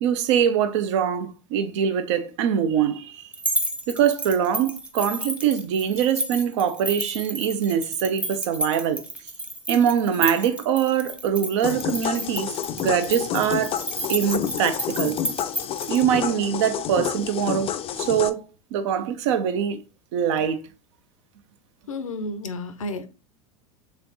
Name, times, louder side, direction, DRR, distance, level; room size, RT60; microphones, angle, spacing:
voice 1, 0.0-3.3 3.9-9.0 9.7-13.8 14.1-15.2 15.9-17.7 18.0-18.4 18.7-19.8 20.1-20.6, right 8 dB, 65° right, 0.7 m, -23 dB
sound 1, 3.3-16.0, right 1 dB, 5° right, 0.7 m, -32 dB
sound 2, 11.6-18.3, left 9 dB, 35° left, 0.4 m, -29 dB
voice 2, 21.9-23.1, left 2 dB, 85° left, 0.6 m, -31 dB
3.6 x 3.3 x 3.9 m
hypercardioid pair, 80°, 17 cm